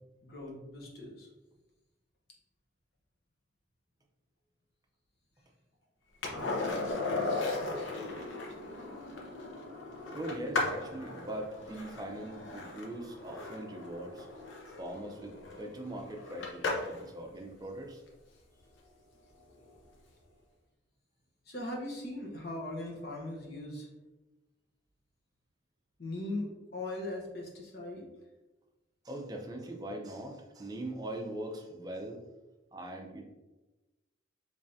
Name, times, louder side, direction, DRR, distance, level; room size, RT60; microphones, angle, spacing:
voice 1, 0.2-1.3 21.4-23.9 26.0-28.1, left 1 dB, 55° left, -1 dB, 0.9 m, -39 dB
Skateboard, 6.2-17.1 19.7-19.8, left 3 dB, 80° left, 0.7 m, -37 dB
voice 2, 10.1-14.3 14.8-18.0 29.0-32.2 32.7-33.2, right 1 dB, 20° right, 2 dB, 0.5 m, -41 dB
3.5 x 3.2 x 2.6 m, 1.1 s
head